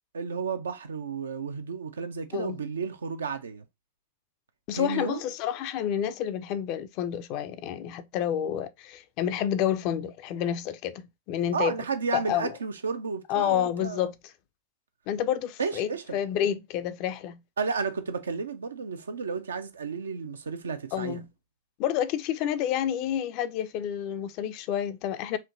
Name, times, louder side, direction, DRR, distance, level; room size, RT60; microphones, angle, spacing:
voice 1, 0.1-3.6 4.7-5.2 11.5-14.1 15.6-16.2 17.6-21.2, right 5 dB, 70° right, 0.5 m, -32 dB
voice 2, 4.7-11.7 12.1-12.5 13.3-14.3 15.1-17.4 20.9-21.3 21.8-25.4, left 10 dB, 40° left, 0.4 m, -29 dB
4.4 x 2.8 x 2.5 m
figure-of-eight pair, 90°, 0 cm